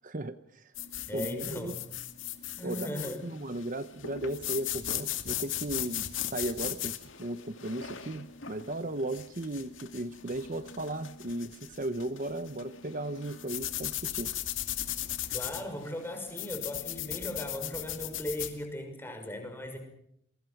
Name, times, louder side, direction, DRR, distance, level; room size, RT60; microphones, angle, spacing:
voice 1, 0.0-0.7 1.1-1.7 2.6-14.3, right 1 dB, 40° right, 11 dB, 0.9 m, -36 dB
sound 1, 0.7-18.5, left 12 dB, 70° left, 2.4 m, -38 dB
voice 2, 1.1-1.9 2.6-3.2 15.3-19.8, left 1 dB, 10° left, 5 dB, 6.1 m, -38 dB
28.5 x 23.5 x 6.0 m, 0.72 s
head